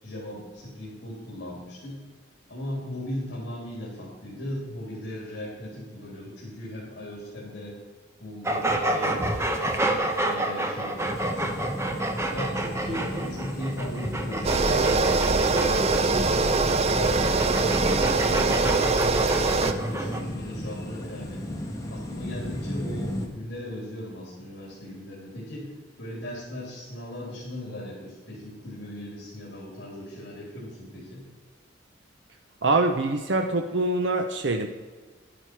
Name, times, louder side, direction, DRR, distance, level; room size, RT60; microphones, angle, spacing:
voice 1, 0.0-2.0 2.5-7.8 8.2-9.2 9.7-11.8 12.3-17.8 18.2-21.4 21.9-25.7 26.0-31.2, left 1 dB, 60° left, -5 dB, 3.5 m, -38 dB
sound 1, 8.4-20.2, right 1 dB, 15° right, 1.0 m, -29 dB
sound 2, 11.0-23.3, equal, 20° left, 1.5 m, -34 dB
sound 3, 14.4-19.7, right 3 dB, 35° right, 0.6 m, -23 dB
voice 2, 32.6-34.7, right 2 dB, 70° right, 5 dB, 0.8 m, -24 dB
11.0 x 10.0 x 4.7 m, 1.4 s
head